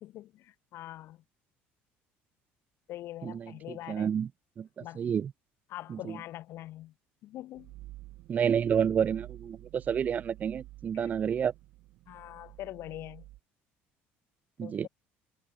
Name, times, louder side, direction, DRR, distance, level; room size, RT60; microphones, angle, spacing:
voice 1, 0.0-1.2 2.9-4.1 4.8-5.0 5.7-6.9 7.2-7.7 10.9-11.1 12.1-13.3 14.6-14.9, left 14 dB, 65° left, 1.1 m, -43 dB
voice 2, 3.2-4.3 4.6-5.3 5.9-6.2 8.3-11.5 14.6-14.9, right 8 dB, 35° right, 0.3 m, -30 dB
sound 1, 7.6-13.4, right 18 dB, 70° right, 2.2 m, -49 dB
cardioid pair, 105°, 5 cm